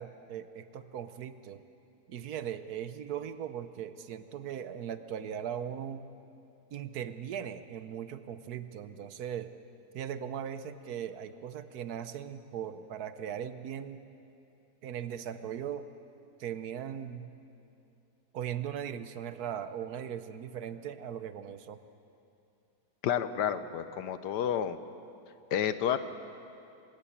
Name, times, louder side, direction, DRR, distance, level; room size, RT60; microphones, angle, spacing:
voice 1, 0.0-1.6 2.1-6.1 6.7-9.5 9.9-14.0 14.8-15.9 16.4-17.3 18.3-21.8, right 9 dB, 70° right, 11 dB, 1.2 m, -39 dB
voice 2, 23.0-24.8 25.5-26.0, left 9 dB, 75° left, 12 dB, 1.4 m, -30 dB
25.0 x 13.0 x 8.5 m, 2.7 s
omnidirectional pair, 1.8 m